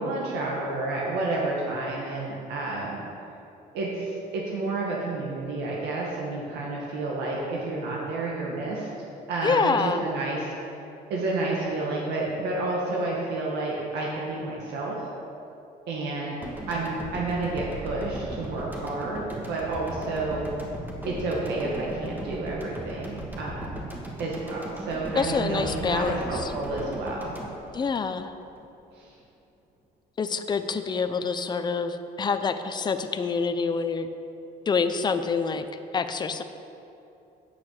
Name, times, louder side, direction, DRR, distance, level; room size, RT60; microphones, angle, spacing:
voice 1, 0.0-3.0 3.7-8.9 9.3-10.5 11.1-15.0 15.9-16.4 16.7-20.5 21.1-23.8 24.2-27.4 29.0-29.1, right 2 dB, 80° right, -4 dB, 1.8 m, -30 dB
voice 2, 9.4-10.0 25.1-26.5 27.7-28.3 30.2-34.1 34.7-35.6 35.9-36.4, left 5 dB, 25° left, 9 dB, 0.6 m, -26 dB
sound 1, 16.4-28.6, right 1 dB, 10° right, 1.6 m, -37 dB
8.8 x 6.8 x 6.6 m, 2.8 s
cardioid pair, 110°, 17 cm